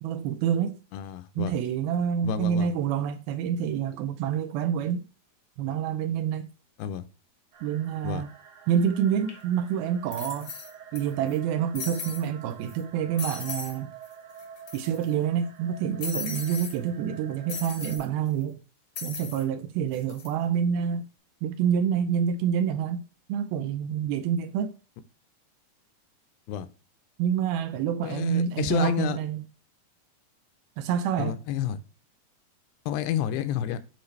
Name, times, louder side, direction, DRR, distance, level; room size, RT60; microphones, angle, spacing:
voice 1, 0.0-0.8 1.4-5.1 5.6-6.5 7.6-8.3 8.7-10.5 10.9-13.9 14.7-18.6 19.0-21.1 21.4-23.0 23.3-24.7 27.2-29.4 30.8-31.4, right 8 dB, 80° right, 2.3 m, -27 dB
voice 2, 0.9-1.6 2.2-2.7 6.8-7.1 8.0-8.2 26.5-26.7 28.0-29.2 31.2-31.8 32.9-33.8, left 10 dB, 85° left, 2.7 m, -30 dB
sound 1, 7.5-18.0, right 7 dB, 50° right, 2.3 m, -48 dB
sound 2, 9.3-9.4 10.1-11.0 11.3-11.4 11.7-12.3 12.7-12.8 13.2-13.8 14.0-14.1 14.4-15.1 16.0-16.7 17.5-18.0 18.9-19.4 19.9-20.3, left 5 dB, 65° left, 1.2 m, -37 dB
9.6 x 4.1 x 3.2 m
omnidirectional pair, 4.6 m